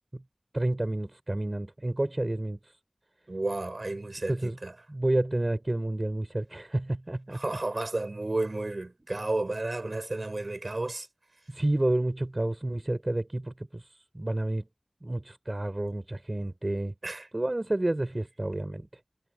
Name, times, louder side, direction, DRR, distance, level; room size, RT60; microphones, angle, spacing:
voice 1, 0.5-2.6 4.3-4.6 4.9-7.6 11.5-13.8 14.1-14.7 15.0-16.9 17.3-18.9, right 1 dB, 45° right, 6.2 m, -30 dB
voice 2, 3.3-4.7 7.3-11.1 17.0-17.3, right 2 dB, 70° right, 7.2 m, -32 dB
wide cardioid pair, 40°, 0 cm